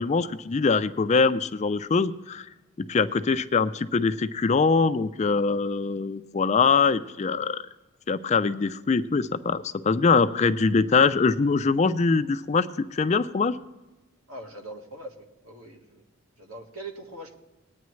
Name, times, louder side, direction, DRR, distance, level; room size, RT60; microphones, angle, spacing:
voice 1, 0.0-2.5 2.9-7.6 8.1-13.6, left 4 dB, 30° left, 12 dB, 0.4 m, -23 dB
voice 2, 14.3-16.0 16.4-17.4, right 1 dB, 85° right, 4 dB, 1.6 m, -42 dB
20.0 x 9.2 x 3.2 m, 1.1 s
head